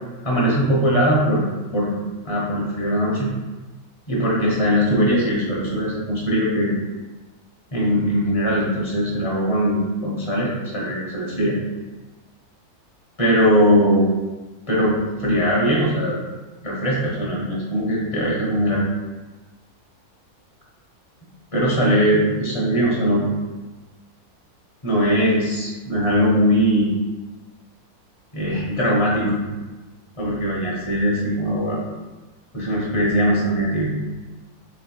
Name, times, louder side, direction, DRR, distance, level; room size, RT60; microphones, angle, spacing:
voice 1, 0.2-1.4 1.7-1.9 2.2-3.3 4.1-6.7 7.7-11.6 13.2-14.1 14.7-16.2 16.6-18.8 21.5-23.3 24.8-26.9 28.3-29.4 30.2-31.8 32.5-33.9, equal, 30° left, -5 dB, 0.6 m, -20 dB
3.2 x 2.9 x 4.3 m, 1.2 s
omnidirectional pair, 1.6 m